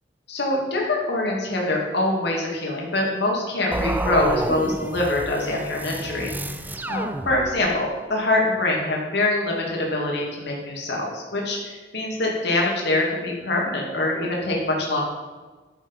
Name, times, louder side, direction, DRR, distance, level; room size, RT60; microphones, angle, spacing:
voice 1, 0.3-6.3 6.9-15.0, left 2 dB, 60° left, -2 dB, 2.4 m, -24 dB
sound 1, 3.7-7.8, right 1 dB, 10° right, 0.4 m, -30 dB
11.5 x 7.3 x 5.4 m, 1.3 s
head